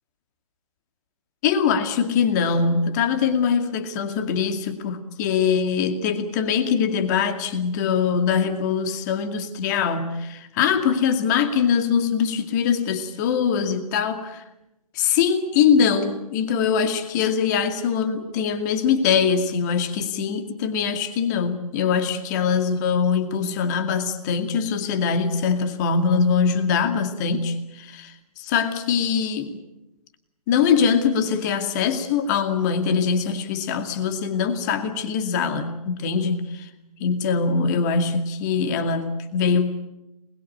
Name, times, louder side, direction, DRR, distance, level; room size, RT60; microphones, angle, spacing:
voice 1, 1.4-14.4 14.9-29.6 30.5-36.7 37.0-39.7, left 6 dB, 30° left, 8 dB, 2.3 m, -22 dB
27.5 x 21.0 x 8.7 m, 0.94 s
figure-of-eight pair, 140°, 20 cm